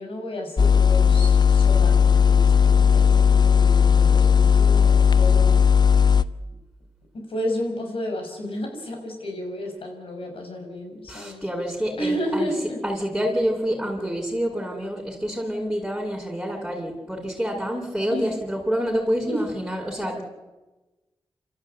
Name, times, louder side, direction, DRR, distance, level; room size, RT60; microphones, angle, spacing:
voice 1, 0.0-5.7 7.3-11.4 12.0-12.8 18.1-18.3 19.3-19.4, equal, 75° left, 2 dB, 6.1 m, -31 dB
sound 1, 0.6-6.2, left 7 dB, 50° left, 0.9 m, -16 dB
voice 2, 11.1-12.5 12.8-20.2, equal, 5° right, -5 dB, 7.6 m, -27 dB
27.0 x 14.0 x 9.2 m, 1.1 s
cardioid pair, 45°, 9 cm